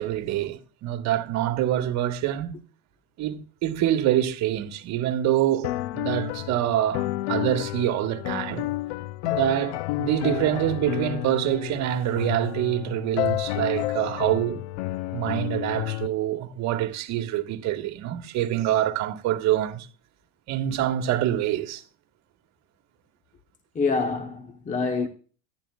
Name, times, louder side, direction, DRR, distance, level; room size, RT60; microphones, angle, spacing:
voice 1, 0.0-2.5 3.2-8.7 9.2-14.6 15.1-19.9 20.5-21.8, right 12 dB, 55° right, 1.6 m, -26 dB
sound 1, 5.6-16.1, left 17 dB, 80° left, 0.5 m, -30 dB
voice 2, 23.7-25.1, left 4 dB, 20° left, 1.1 m, -26 dB
14.0 x 11.5 x 2.4 m
supercardioid pair, 120°, 34 cm